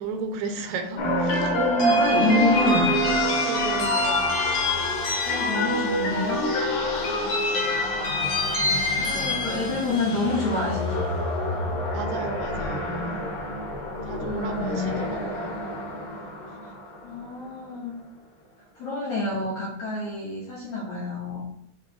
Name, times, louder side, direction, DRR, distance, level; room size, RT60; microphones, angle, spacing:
voice 1, 0.0-1.6 3.4-4.4 7.2-7.8 11.9-13.3 14.0-15.6 16.5-16.7, right 4 dB, 80° right, 2.7 m, -35 dB
sound 1, 1.0-17.2, left 1 dB, 90° left, 1.2 m, -26 dB
voice 2, 1.8-2.9 5.3-6.5 9.0-11.2 14.2-15.0 16.6-16.8 17.0-17.9 18.8-21.5, left 2 dB, 70° left, 1.7 m, -28 dB
8.3 x 3.0 x 4.6 m
omnidirectional pair, 4.8 m